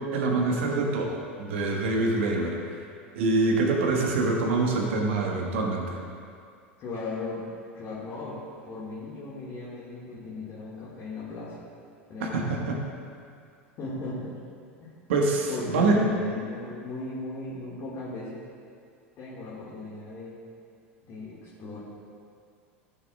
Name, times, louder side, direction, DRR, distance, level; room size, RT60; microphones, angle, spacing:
voice 1, 0.1-2.6 3.1-6.0 12.2-12.8 15.1-16.0, right 3 dB, 65° right, 0 dB, 1.4 m, -25 dB
voice 2, 6.8-7.5 7.7-11.7 12.1-12.7 13.8-14.3 14.8-14.9 15.5-18.4 19.2-20.4 21.0-21.8, left 3 dB, 40° left, -9 dB, 1.9 m, -37 dB
14.0 x 6.7 x 2.4 m, 2.4 s
hypercardioid pair, 85°, 7 cm